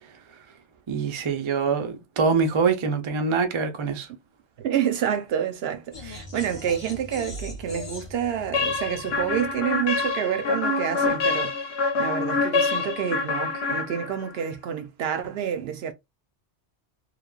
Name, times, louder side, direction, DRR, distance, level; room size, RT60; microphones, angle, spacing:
voice 1, 0.9-4.1, right 5 dB, 50° right, 0.3 m, -24 dB
voice 2, 4.6-15.9, right 9 dB, 70° right, 0.8 m, -28 dB
sound 1, 5.9-10.1, left 1 dB, 30° left, 0.6 m, -40 dB
sound 2, 8.5-14.4, left 4 dB, 70° left, 0.9 m, -26 dB
3.2 x 2.1 x 2.3 m
omnidirectional pair, 1.1 m